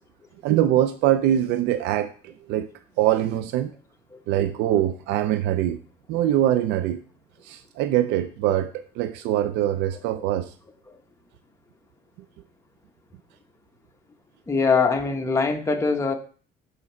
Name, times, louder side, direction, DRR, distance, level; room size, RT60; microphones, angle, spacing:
voice 1, 0.4-2.7 3.0-3.7 4.3-5.8 6.1-7.0 7.4-10.5, right 12 dB, 90° right, 0.4 m, -23 dB
voice 2, 14.5-16.1, left 4 dB, 15° left, 0.8 m, -22 dB
6.3 x 3.9 x 4.3 m
cardioid pair, 110°, 17 cm